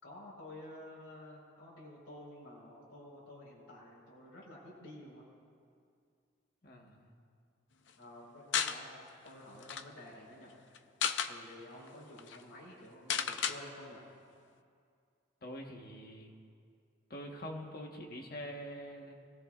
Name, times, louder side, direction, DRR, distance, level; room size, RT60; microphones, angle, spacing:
voice 1, 0.0-5.2 8.0-10.8 11.2-14.0, left 1 dB, 85° left, -5 dB, 4.8 m, -51 dB
voice 2, 6.6-7.1 15.4-16.3 17.1-19.1, equal, 45° left, 1 dB, 1.4 m, -45 dB
sound 1, 8.5-8.8 9.3-9.4 9.6-9.8 10.7-11.3 11.9-12.0 12.2-12.4 13.1-13.6, left 7 dB, 60° left, 0.6 m, -33 dB
25.0 x 17.0 x 2.5 m, 2.3 s
head